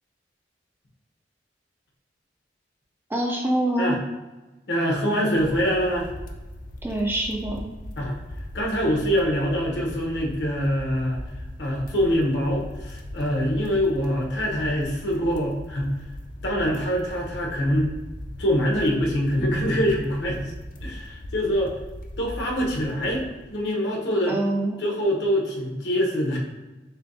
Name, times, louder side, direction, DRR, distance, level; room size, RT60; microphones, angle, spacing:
voice 1, 3.1-4.0 6.8-7.6 24.3-24.8, right 1 dB, 10° right, 0 dB, 0.4 m, -25 dB
voice 2, 4.7-6.1 8.0-8.2 8.5-11.2 11.6-16.0 16.4-17.9 18.4-20.5 20.8-21.8 22.2-24.4 24.8-26.4, equal, 75° left, -2 dB, 0.9 m, -24 dB
sound 1, 5.3-23.7, equal, 50° left, 0.4 m, -39 dB
6.6 x 2.2 x 2.6 m, 1.1 s
head